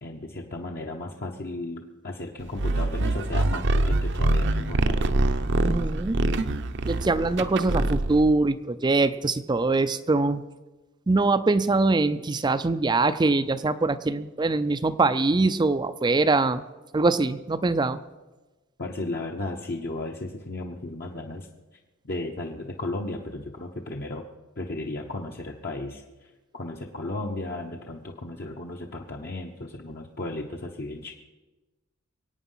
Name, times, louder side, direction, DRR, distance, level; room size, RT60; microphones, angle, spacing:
voice 1, 0.0-5.2 18.8-21.5 22.0-24.2 24.6-31.1, left 2 dB, 50° left, 0 dB, 1.0 m, -35 dB
sound 1, 2.6-8.3, right 2 dB, 60° right, 0.8 m, -24 dB
voice 2, 5.6-6.2 6.8-10.4 11.1-16.6 16.9-18.0, right 3 dB, 20° right, 11 dB, 0.4 m, -23 dB
23.0 x 9.0 x 5.6 m, 1.1 s
head